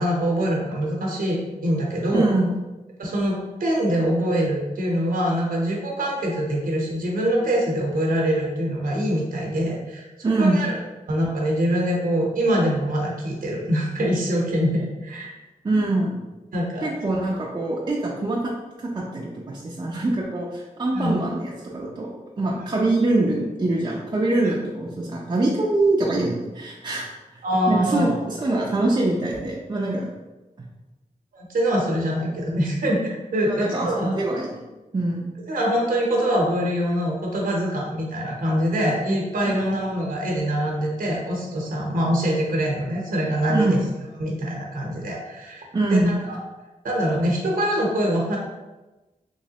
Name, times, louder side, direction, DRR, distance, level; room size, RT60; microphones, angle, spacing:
voice 1, 0.0-2.3 3.0-10.1 10.4-10.7 11.1-15.3 16.5-16.9 20.9-21.3 22.6-22.7 24.4-24.5 27.4-28.2 31.3-34.2 35.5-43.8 44.2-46.4 46.8-48.4, equal, 80° right, -2 dB, 0.7 m, -24 dB
voice 2, 2.1-2.5 10.2-10.6 15.6-16.2 16.8-18.4 18.8-22.1 22.4-27.0 27.3-27.4 27.7-30.1 33.5-34.6 34.9-35.3 39.5-39.6 43.5-43.8 45.7-46.3, right 2 dB, 30° right, -4 dB, 0.4 m, -24 dB
3.1 x 3.0 x 2.8 m, 1.1 s
wide cardioid pair, 125°, 14 cm